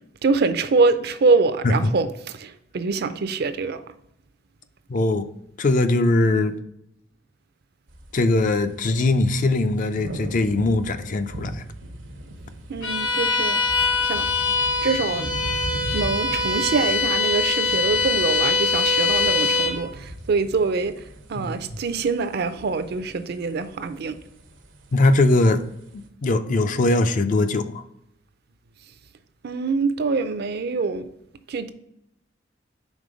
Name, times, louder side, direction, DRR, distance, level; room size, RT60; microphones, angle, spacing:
voice 1, 0.2-2.1 2.3-3.8 12.7-14.3 14.8-15.3 15.9-20.9 21.3-24.2 29.4-31.1 31.5-31.7, right 4 dB, 55° right, 0.5 m, -24 dB
voice 2, 4.9-5.3 5.6-6.6 8.1-11.6 21.4-21.8 24.9-25.6 26.2-27.8, left 2 dB, 45° left, 0.4 m, -21 dB
sound 1, 7.9-26.1, right 1 dB, 85° right, 0.9 m, -39 dB
Bowed string instrument, 12.8-19.8, left 3 dB, 85° left, 1.1 m, -23 dB
5.3 x 3.7 x 4.9 m
head